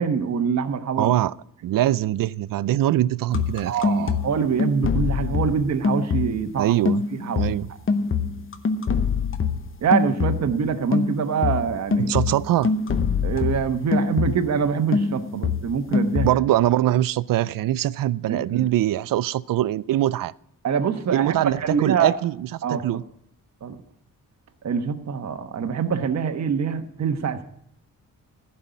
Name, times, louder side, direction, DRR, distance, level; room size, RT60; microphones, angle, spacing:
voice 1, 0.0-1.1 3.6-6.7 7.1-7.6 9.8-12.1 13.2-16.3 18.3-18.7 20.6-22.1 22.6-22.8 23.6-23.8 24.6-27.4, right 6 dB, 55° right, 1.1 m, -24 dB
voice 2, 1.0-1.3 1.6-4.2 6.6-7.0 7.4-7.7 12.0-12.7 16.2-20.3 21.1-22.3 22.7-23.0, right 13 dB, 80° right, 0.5 m, -22 dB
sound 1, 3.3-6.6 6.9-10.7 10.9-14.6 14.9-16.3, left 5 dB, 40° left, 0.9 m, -24 dB
15.0 x 5.6 x 9.2 m
wide cardioid pair, 140°, 33 cm